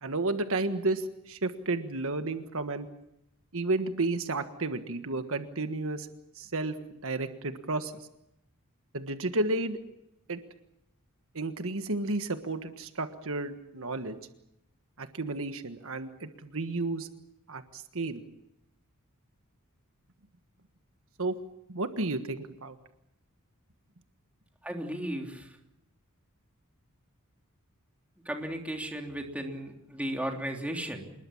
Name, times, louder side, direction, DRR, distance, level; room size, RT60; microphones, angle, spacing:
voice 1, 0.0-2.9 3.5-6.1 6.3-8.1 8.9-9.8 10.3-10.4 11.3-14.2 15.0-17.1 17.5-18.2 21.2-21.4 21.7-22.8, right 2 dB, 65° right, 8 dB, 1.5 m, -32 dB
voice 2, 24.6-25.6 28.2-31.1, right 1 dB, 5° right, 2 dB, 3.2 m, -35 dB
27.0 x 21.0 x 7.2 m, 0.82 s
head